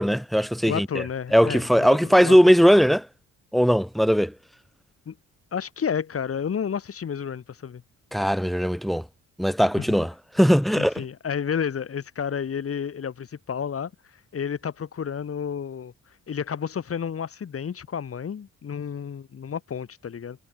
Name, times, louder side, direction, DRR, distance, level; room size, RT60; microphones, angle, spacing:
voice 1, 0.0-1.0 1.3-3.1 3.5-4.3 8.1-9.0 9.4-11.0, equal, ahead, 3.0 m, -19 dB
voice 2, 0.7-1.6 1.9-2.4 5.1-5.2 5.5-7.8 10.8-15.9 16.3-20.4, left 7 dB, 50° left, 6.4 m, -31 dB
cardioid pair, 90°, 30 cm